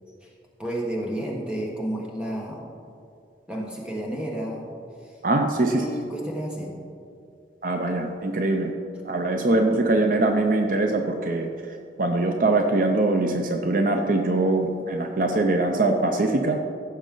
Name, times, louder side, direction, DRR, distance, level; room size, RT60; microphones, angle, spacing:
voice 1, 0.6-2.6 3.5-4.7 5.6-6.8, right 1 dB, 5° right, -2 dB, 1.4 m, -31 dB
voice 2, 5.2-5.8 7.6-8.7 9.0-11.5 12.0-16.6, right 2 dB, 50° right, 4 dB, 0.6 m, -22 dB
15.0 x 6.3 x 3.8 m, 2.4 s
head